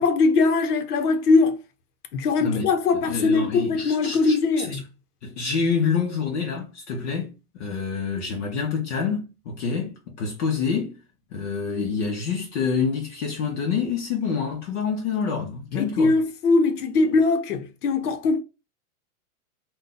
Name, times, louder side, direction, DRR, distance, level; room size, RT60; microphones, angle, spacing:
voice 1, 0.0-1.6 2.1-4.8 15.7-18.4, left 4 dB, 80° left, 0.9 m, -21 dB
voice 2, 2.4-2.7 3.1-4.8 5.2-10.9 11.3-16.2, left 5 dB, 50° left, 0.9 m, -27 dB
2.6 x 2.3 x 3.8 m
hypercardioid pair, 145°, 45 cm